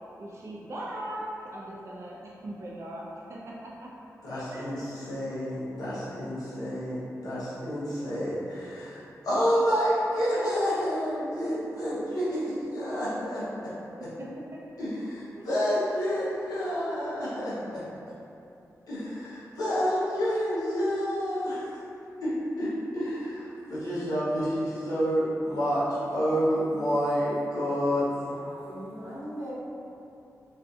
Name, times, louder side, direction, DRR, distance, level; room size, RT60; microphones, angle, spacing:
voice 1, 0.2-2.2 2.4-3.9 4.5-4.8 14.0-14.6 15.4-15.5, right 1 dB, 50° right, -5 dB, 0.4 m, -39 dB
voice 2, 4.2-13.4 14.0-14.1 14.8-17.8 18.9-21.7 22.2-22.3 22.6-25.9 26.1-28.1, equal, 85° left, -10 dB, 0.8 m, -29 dB
voice 3, 28.2-29.5, equal, 75° right, -8 dB, 0.7 m, -40 dB
2.5 x 2.5 x 2.3 m, 2.8 s
cardioid pair, 60°, 6 cm